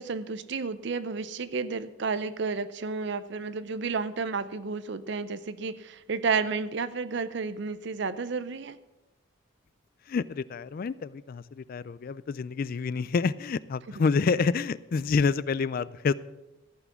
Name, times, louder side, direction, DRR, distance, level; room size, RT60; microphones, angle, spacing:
voice 1, 0.0-8.8, right 4 dB, 60° right, 14 dB, 0.6 m, -31 dB
voice 2, 10.1-16.1, left 5 dB, 45° left, 18 dB, 0.3 m, -28 dB
14.5 x 6.1 x 7.2 m, 0.99 s
head